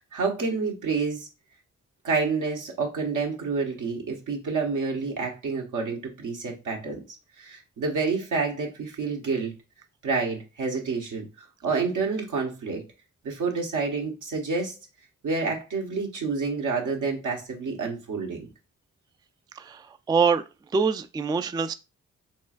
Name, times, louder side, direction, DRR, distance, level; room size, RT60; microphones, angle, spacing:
voice 1, 0.1-1.3 2.0-7.0 7.4-9.5 10.0-11.3 11.6-12.8 13.2-14.8 15.2-18.5, right 4 dB, 75° right, 1.2 m, -28 dB
voice 2, 20.1-20.4 20.7-21.7, right 5 dB, 15° right, 0.3 m, -24 dB
4.4 x 3.1 x 2.4 m
supercardioid pair, 45°, 31 cm